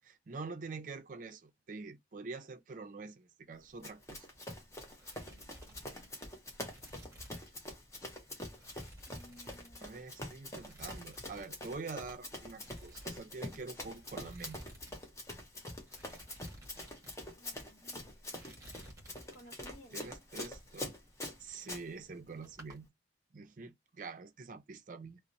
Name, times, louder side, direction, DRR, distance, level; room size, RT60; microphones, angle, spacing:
voice 1, 0.0-4.3 9.8-14.6 19.9-20.9 21.4-22.9 23.3-25.2, right 4 dB, 45° right, 0.4 m, -46 dB
Run, 3.8-21.8, left 1 dB, 15° left, 0.7 m, -45 dB
sound 1, 4.1-4.6 4.8-7.6 7.9-8.1 8.5-10.1 10.5-11.5 11.7-11.9 12.5-15.0 15.2-15.3 15.8-17.1 17.7-17.9 18.3-19.7 20.2-22.0 22.3-22.8, right 1 dB, 15° right, 1.2 m, -56 dB
voice 2, 5.2-6.2 9.1-10.0 17.4-18.1 19.3-20.2, equal, 65° left, 0.8 m, -59 dB
2.8 x 2.0 x 2.5 m
head